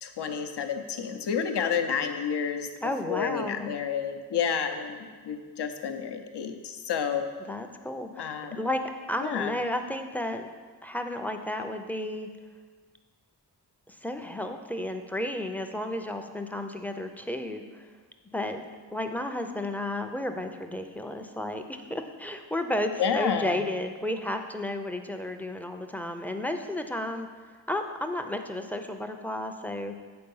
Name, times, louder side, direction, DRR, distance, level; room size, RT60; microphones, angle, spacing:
voice 1, 0.0-2.7 3.0-7.2 8.2-8.6 9.2-9.5 23.0-23.6, left 7 dB, 80° left, 6 dB, 0.7 m, -30 dB
voice 2, 2.8-3.7 7.5-8.3 8.6-10.5 10.8-12.3 13.9-17.9 18.3-18.6 18.9-27.3 27.7-29.9, left 1 dB, 5° left, 5 dB, 0.4 m, -32 dB
7.8 x 4.6 x 5.4 m, 1.5 s
wide cardioid pair, 135°, 40 cm